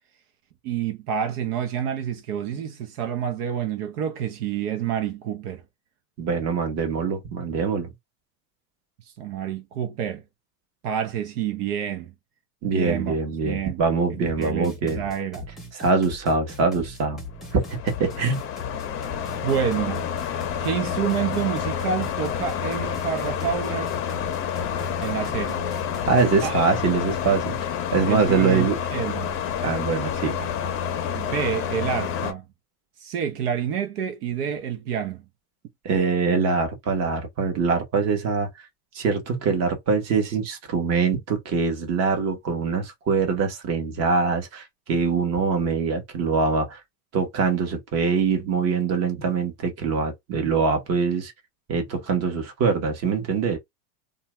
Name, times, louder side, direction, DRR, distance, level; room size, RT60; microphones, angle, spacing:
voice 1, 0.6-5.6 9.0-10.2 10.8-12.1 12.7-13.2 13.4-13.8 14.4-15.5 19.4-20.1 20.6-23.9 25.0-25.6 26.4-26.7 28.1-29.3 31.1-32.4 33.0-35.2, right 8 dB, 70° right, 0.9 m, -28 dB
voice 2, 6.2-7.9 12.6-15.0 15.7-17.2 17.5-18.4 26.0-28.8 29.6-30.5 35.8-38.5 38.9-46.8 47.1-51.3 51.7-53.6, right 5 dB, 35° right, 1.2 m, -23 dB
sound 1, 14.3-26.3, left 2 dB, ahead, 0.9 m, -40 dB
sound 2, 17.3-32.3, left 8 dB, 30° left, 0.6 m, -29 dB
2.7 x 2.4 x 3.0 m
supercardioid pair, 140°, 48 cm